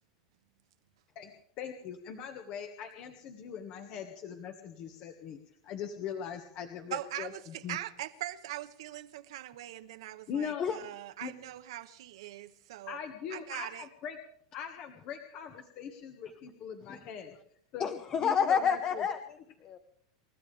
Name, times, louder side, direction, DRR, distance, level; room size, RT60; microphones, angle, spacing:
voice 1, 1.6-5.4 5.6-7.8 10.3-10.7 11.2-11.3 12.9-14.2 14.5-17.3 17.7-17.9 18.2-19.0, left 8 dB, 45° left, 1.6 m, -41 dB
voice 2, 6.9-13.0 13.3-13.8, right 14 dB, 80° right, 1.2 m, -41 dB
voice 3, 17.8-19.8, left 7 dB, 30° left, 1.0 m, -30 dB
29.0 x 14.0 x 3.4 m
supercardioid pair, 135°, 3 cm